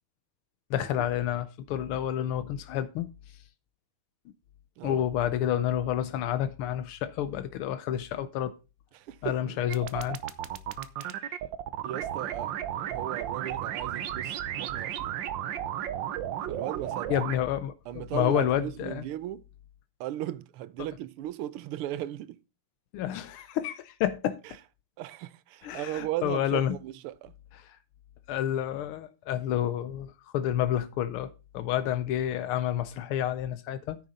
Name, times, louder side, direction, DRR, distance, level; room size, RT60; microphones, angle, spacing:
voice 1, 0.7-3.1 4.8-8.5 9.2-10.2 17.1-19.1 22.9-24.4 25.6-26.8 28.3-34.0, left 11 dB, 85° left, 1.6 m, -29 dB
voice 2, 8.9-9.6 11.0-11.4 11.8-12.5 12.8-15.2 16.5-17.1 17.9-19.4 20.0-22.4 25.0-27.3, right 13 dB, 85° right, 1.6 m, -37 dB
sound 1, 9.7-17.4, right 10 dB, 65° right, 1.4 m, -34 dB
9.9 x 7.8 x 4.1 m
omnidirectional pair, 2.4 m